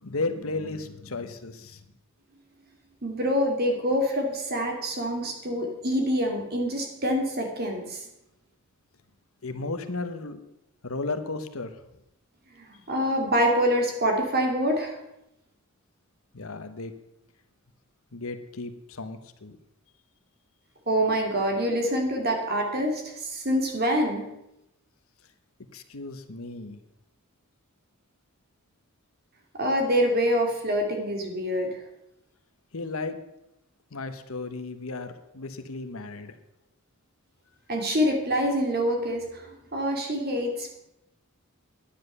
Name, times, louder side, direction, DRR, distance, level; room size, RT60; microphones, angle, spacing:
voice 1, 0.0-1.8 9.4-10.4 10.8-11.8 16.3-16.9 18.1-19.6 25.7-26.8 32.7-33.2 33.9-36.3, left 3 dB, 70° left, 9 dB, 1.1 m, -34 dB
voice 2, 3.0-8.0 12.6-15.0 20.9-24.2 29.6-31.7 37.7-40.7, equal, 45° right, 2 dB, 2.7 m, -26 dB
10.5 x 10.0 x 6.7 m, 0.84 s
head